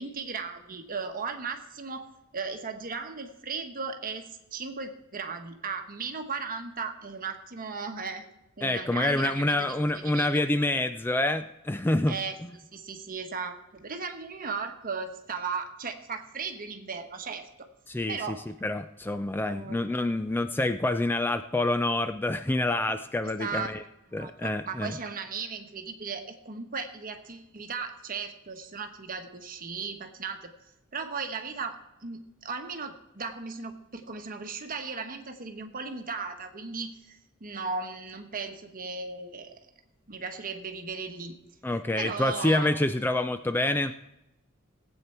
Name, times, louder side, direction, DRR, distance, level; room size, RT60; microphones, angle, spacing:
voice 1, 0.0-8.3 8.6-9.6 9.9-10.4 12.1-17.7 18.1-18.4 19.4-19.9 23.4-23.7 24.1-30.5 30.9-39.6 40.1-41.3 42.0-42.8, right 5 dB, 45° right, 6 dB, 1.2 m, -36 dB
voice 2, 8.6-12.1 17.9-23.8 24.1-24.9 41.6-43.9, left 1 dB, 10° left, 9 dB, 0.3 m, -27 dB
18.0 x 8.3 x 4.4 m, 0.91 s
head